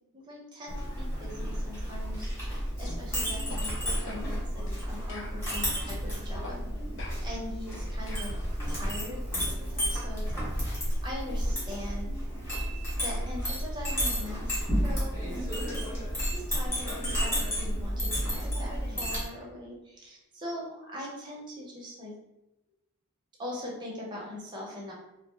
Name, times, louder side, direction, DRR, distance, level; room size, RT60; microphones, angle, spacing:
voice 1, 0.1-6.6 7.2-8.3 8.7-10.4 11.0-12.1 13.0-15.8 16.3-22.1 23.4-24.9, left 1 dB, 20° right, -3 dB, 0.6 m, -41 dB
Chink clink, 0.7-19.2, equal, 10° left, 1.0 m, -32 dB
sound 1, 2.8-3.0 3.5-3.6 4.1-4.3 4.7-4.8 5.1-6.0 6.4-6.6 7.0-8.4, left 2 dB, 55° left, 0.5 m, -44 dB
2.4 x 2.1 x 3.2 m, 0.94 s
head